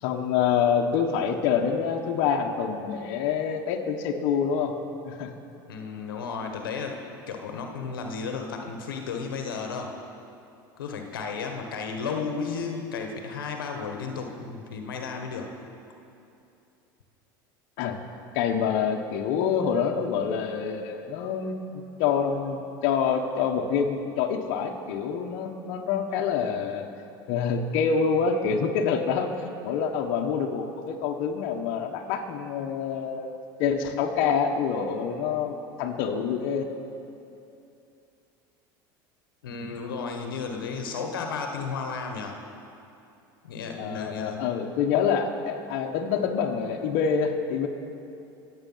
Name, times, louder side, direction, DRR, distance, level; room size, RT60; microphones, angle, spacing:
voice 1, 0.0-4.7 5.0-5.3 17.8-18.0 18.3-26.8 27.3-29.3 29.6-36.7 43.8-47.7, left 6 dB, 65° left, 2 dB, 1.3 m, -26 dB
voice 2, 5.7-7.0 7.3-9.9 10.8-15.5 39.4-42.4 43.4-44.4, left 5 dB, 90° left, 3 dB, 1.3 m, -33 dB
23.5 x 8.1 x 5.7 m, 2.7 s
hypercardioid pair, 95°, 11 cm